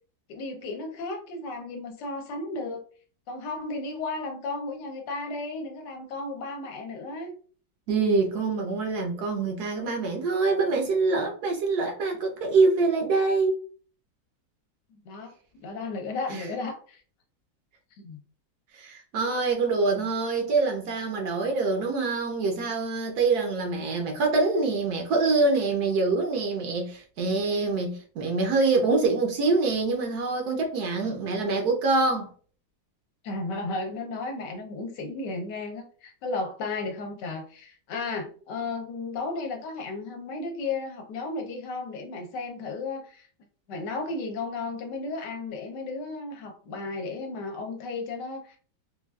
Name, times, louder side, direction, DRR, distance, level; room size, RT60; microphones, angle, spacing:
voice 1, 0.3-2.8 3.3-7.3 15.0-17.0 18.0-18.2 33.2-43.3 43.7-48.6, left 3 dB, 75° left, 1.2 m, -34 dB
voice 2, 7.9-13.6 16.3-16.5 18.7-32.3, right 3 dB, 70° right, 1.0 m, -25 dB
3.9 x 2.3 x 2.3 m
omnidirectional pair, 2.0 m